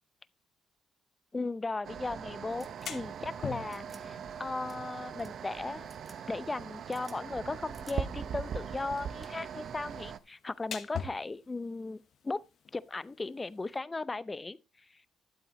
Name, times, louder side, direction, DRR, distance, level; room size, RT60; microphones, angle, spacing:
voice 1, 1.3-5.9 6.3-12.4 12.7-14.6, left 3 dB, 25° left, 0.6 m, -37 dB
sound 1, 1.8-10.2, right 7 dB, 60° right, 0.7 m, -41 dB
sound 2, 2.5-13.8, left 7 dB, 65° left, 1.1 m, -48 dB
sound 3, 2.6-2.9 3.7-4.0 4.7-4.8 5.2-5.3 5.9-6.2 6.5-7.2 7.7-8.0 8.5-8.6 9.0-9.5 10.7-11.0, right 3 dB, 25° right, 1.5 m, -55 dB
12.0 x 7.7 x 3.1 m
cardioid pair, 90°, 0 cm